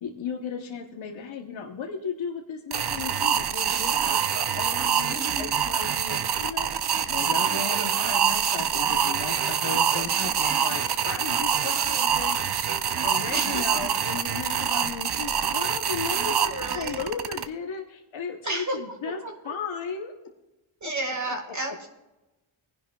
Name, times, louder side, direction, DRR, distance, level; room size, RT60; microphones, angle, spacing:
voice 1, 0.0-6.7 7.1-20.1 20.8-21.1, left 6 dB, 65° left, 2 dB, 1.0 m, -35 dB
sound 1, 2.7-17.4, right 8 dB, 50° right, 0.7 m, -25 dB
voice 2, 5.1-5.5 10.4-10.8 13.3-13.6 16.4-17.0 18.4-18.8 19.0-19.5 20.8-21.9, right 2 dB, 35° right, 1 dB, 1.8 m, -33 dB
19.5 x 10.5 x 2.3 m, 1.0 s
wide cardioid pair, 80°, 49 cm